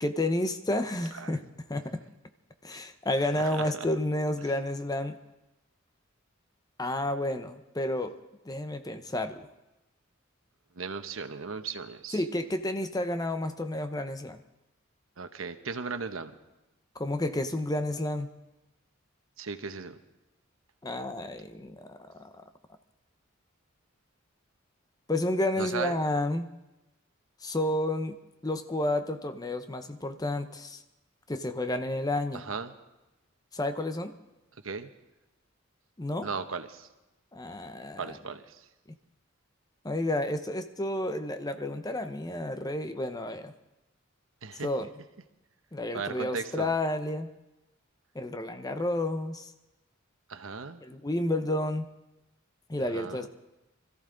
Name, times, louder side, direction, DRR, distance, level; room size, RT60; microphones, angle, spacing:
voice 1, 0.0-1.4 1.7-2.0 2.6-5.2 6.8-8.2 8.5-9.5 12.1-14.4 17.0-18.3 20.8-22.3 25.1-26.5 27.4-28.2 28.4-30.8 31.3-32.4 33.5-34.1 36.0-36.3 37.3-38.2 39.8-43.5 44.6-44.9 45.7-47.3 48.1-49.5 50.8-51.9 52.7-53.3, left 1 dB, 20° left, 8 dB, 0.7 m, -31 dB
voice 2, 3.3-3.9 10.7-12.2 15.2-16.3 19.4-19.9 25.6-26.0 32.3-32.7 34.6-34.9 36.2-36.9 38.0-38.6 44.4-44.7 45.9-46.7 50.3-50.8 52.9-53.3, right 5 dB, 85° right, 9 dB, 1.0 m, -36 dB
24.5 x 14.0 x 3.8 m, 0.98 s
head